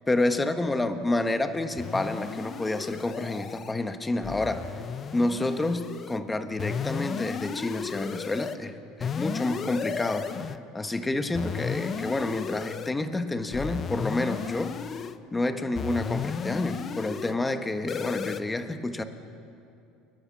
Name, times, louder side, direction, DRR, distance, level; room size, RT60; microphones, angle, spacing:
voice 1, 0.1-4.7 5.1-14.8 15.3-19.0, left 2 dB, 10° left, 8 dB, 1.3 m, -29 dB
sound 1, 1.8-3.7 4.2-6.2 6.6-8.6 9.0-10.6 11.3-12.9 13.5-15.2 15.7-17.3 17.9-18.4, left 7 dB, 35° left, 0.8 m, -34 dB
30.0 x 11.5 x 7.6 m, 2.7 s
supercardioid pair, 110°, 0 cm